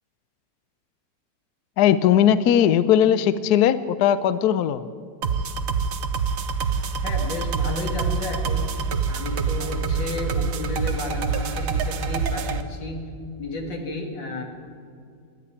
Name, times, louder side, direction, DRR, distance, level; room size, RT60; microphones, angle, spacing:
voice 1, 1.8-4.8, left 10 dB, 70° left, 14 dB, 1.0 m, -18 dB
sound 1, 5.2-12.6, right 5 dB, 55° right, 1.1 m, -26 dB
voice 2, 7.0-8.7 9.1-13.0 13.4-14.4, left 2 dB, 85° left, 2 dB, 2.8 m, -32 dB
13.5 x 10.5 x 9.8 m, 2.4 s
omnidirectional pair, 2.0 m